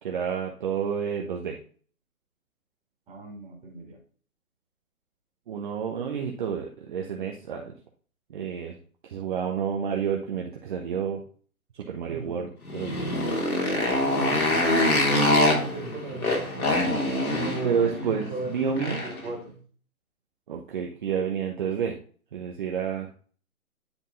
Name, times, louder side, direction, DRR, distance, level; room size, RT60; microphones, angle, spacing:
voice 1, 0.0-1.6 5.5-7.7 8.3-8.8 9.0-11.2 11.7-13.1 17.6-19.0 20.5-22.0 22.3-23.1, right 7 dB, 35° right, 1 dB, 1.0 m, -30 dB
voice 2, 3.1-4.0 12.1-12.4 14.0-16.7 17.3-19.6, right 3 dB, 10° right, -1 dB, 2.1 m, -37 dB
Motorcycle, 12.7-19.3, left 1 dB, 80° left, 3.2 m, -25 dB
10.0 x 3.9 x 3.9 m, 0.43 s
figure-of-eight pair, 145°, 43 cm